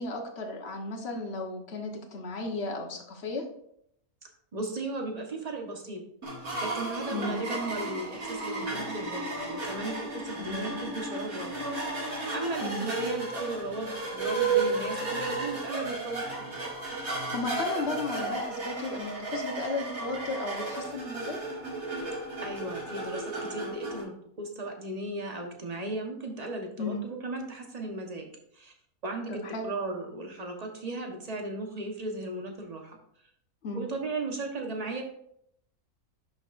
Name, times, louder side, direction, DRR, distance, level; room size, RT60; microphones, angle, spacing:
voice 1, 0.0-3.4 7.1-7.4 10.4-10.7 12.6-12.9 17.1-21.4 26.8-27.0 29.3-29.7 33.6-33.8, left 3 dB, 45° left, 2 dB, 1.4 m, -34 dB
voice 2, 4.5-6.0 6.6-12.0 12.3-16.2 22.4-24.1 24.4-28.7 29.0-33.0 33.7-35.0, right 2 dB, 30° right, 2 dB, 1.2 m, -36 dB
sound 1, 6.2-24.0, right 3 dB, 65° right, 2.7 m, -33 dB
10.5 x 6.0 x 2.6 m, 0.71 s
omnidirectional pair, 1.6 m